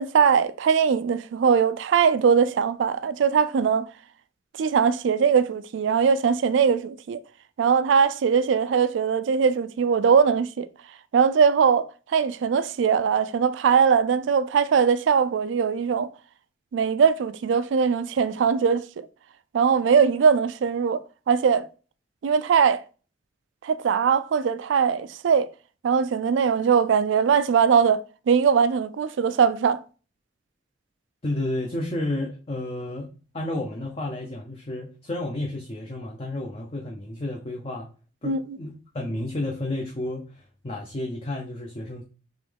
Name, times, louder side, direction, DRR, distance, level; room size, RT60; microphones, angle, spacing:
voice 1, 0.0-3.9 4.6-7.2 7.6-10.7 11.1-16.1 16.7-18.9 19.5-21.6 22.2-22.8 23.6-25.5 25.8-28.0 28.3-29.8 38.2-38.6, right 6 dB, 80° right, 0.3 m, -21 dB
voice 2, 31.2-33.1 33.3-37.9 38.2-42.0, left 1 dB, 35° left, 0.5 m, -31 dB
3.6 x 3.0 x 3.4 m
head